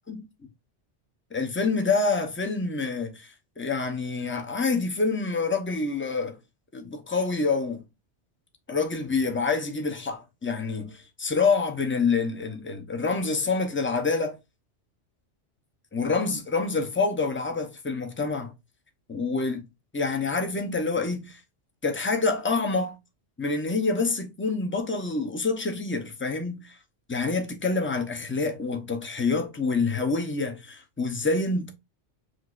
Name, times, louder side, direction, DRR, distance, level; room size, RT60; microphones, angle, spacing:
voice 1, 1.3-6.4 6.7-7.8 8.7-14.4 15.9-18.5 19.1-19.7 19.9-21.4 21.8-22.9 23.4-26.8 27.1-31.7, left 4 dB, 15° left, 0.4 m, -27 dB
6.1 x 2.8 x 2.4 m
omnidirectional pair, 1.2 m